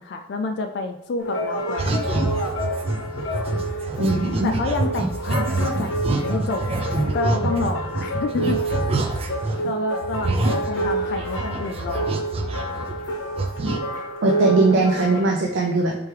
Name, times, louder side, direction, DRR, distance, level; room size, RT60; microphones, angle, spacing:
voice 1, 0.0-1.9 4.4-6.6 7.1-8.8 9.6-12.1, left 3 dB, 60° left, 5 dB, 0.3 m, -29 dB
sound 1, 1.2-15.3, right 1 dB, 85° left, 0.8 m, -29 dB
sound 2, 1.8-9.7 10.0-13.1 13.4-13.8, right 2 dB, 30° right, 0.3 m, -26 dB
voice 2, 4.0-4.5 14.2-15.9, right 2 dB, 85° right, -1 dB, 0.5 m, -20 dB
4.5 x 3.4 x 3.2 m, 0.89 s
head